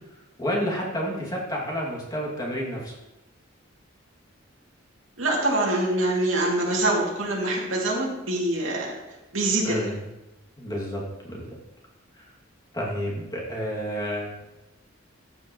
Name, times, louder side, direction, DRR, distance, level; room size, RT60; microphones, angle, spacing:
voice 1, 0.4-2.9 9.6-10.0 10.6-11.0 11.3-11.5 12.2-12.3 12.7-14.4, equal, 20° left, -4 dB, 2.3 m, -30 dB
voice 2, 5.2-8.9 9.3-9.8, right 2 dB, 90° right, -3 dB, 2.5 m, -24 dB
13.5 x 7.8 x 3.1 m, 0.97 s
head